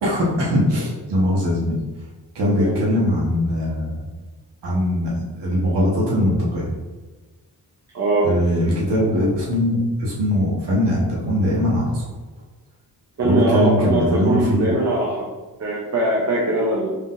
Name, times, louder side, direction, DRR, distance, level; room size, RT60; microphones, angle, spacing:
voice 1, 0.0-1.8 2.3-4.1 4.6-6.7 8.2-12.0 13.2-14.7, left 1 dB, 85° right, -5 dB, 1.5 m, -21 dB
voice 2, 2.5-2.9 7.9-8.4 13.2-15.3 15.6-16.9, right 2 dB, 40° right, -3 dB, 0.8 m, -21 dB
5.0 x 3.6 x 2.6 m, 1.2 s
cardioid pair, 105°, 40 cm